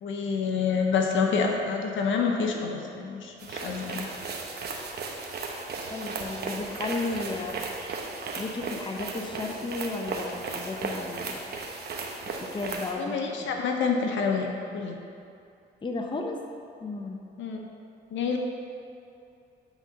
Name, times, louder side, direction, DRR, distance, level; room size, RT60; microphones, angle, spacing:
voice 1, 0.0-4.1 13.0-15.0 17.4-17.6 18.1-18.4, left 5 dB, 70° left, 2 dB, 0.9 m, -27 dB
sound 1, 3.4-12.9, right 3 dB, 55° right, 0.9 m, -35 dB
voice 2, 5.9-7.6 8.4-11.4 12.4-13.2 13.5-13.6 15.8-16.4 16.8-17.2, left 3 dB, 25° left, 2 dB, 0.7 m, -33 dB
8.3 x 3.8 x 5.2 m, 2.6 s
cardioid pair, 90°, 20 cm